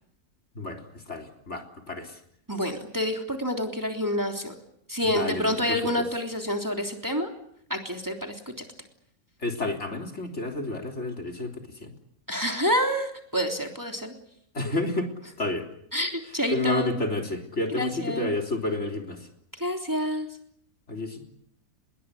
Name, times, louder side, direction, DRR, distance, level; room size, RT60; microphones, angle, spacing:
voice 1, 1.1-2.2 5.1-5.8 9.4-11.9 14.5-15.1 15.4-15.7 16.5-19.2 20.9-21.3, left 2 dB, 50° left, 3 dB, 4.0 m, -30 dB
voice 2, 2.5-4.5 4.9-7.3 7.7-8.5 12.3-14.1 15.9-16.9 17.7-18.3 19.6-20.3, equal, 10° right, 3 dB, 3.4 m, -28 dB
26.0 x 22.0 x 8.5 m, 0.69 s
omnidirectional pair, 1.6 m